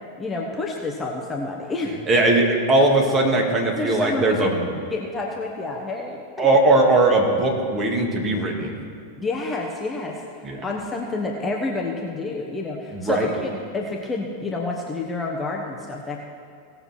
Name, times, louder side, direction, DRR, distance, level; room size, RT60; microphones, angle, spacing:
voice 1, 0.2-2.0 3.8-6.5 9.2-16.2, left 3 dB, 15° left, 0 dB, 1.1 m, -29 dB
voice 2, 2.1-4.6 6.4-8.7 10.4-10.6 12.9-13.3, right 2 dB, 25° right, 0 dB, 2.0 m, -19 dB
17.5 x 6.8 x 4.4 m, 2.3 s
figure-of-eight pair, 90°, 0 cm